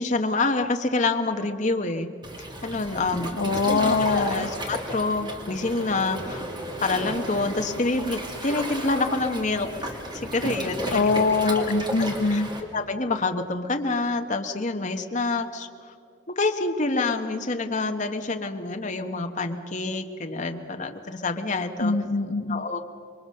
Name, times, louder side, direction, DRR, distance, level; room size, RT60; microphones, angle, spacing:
voice 1, 0.0-2.1 2.6-6.4 6.8-11.0 11.4-11.7 12.0-12.4 12.7-15.7 16.4-21.9 22.5-22.8, left 3 dB, 40° left, 5 dB, 1.1 m, -27 dB
Waves surf, 2.2-12.6, right 1 dB, 25° right, 2.3 m, -34 dB
voice 2, 3.4-4.5 10.9-12.5 21.8-22.6, left 3 dB, 70° left, 8 dB, 0.9 m, -23 dB
sound 1, 5.3-7.9, left 1 dB, 85° left, 3.8 m, -43 dB
26.0 x 22.5 x 6.6 m, 2.4 s
head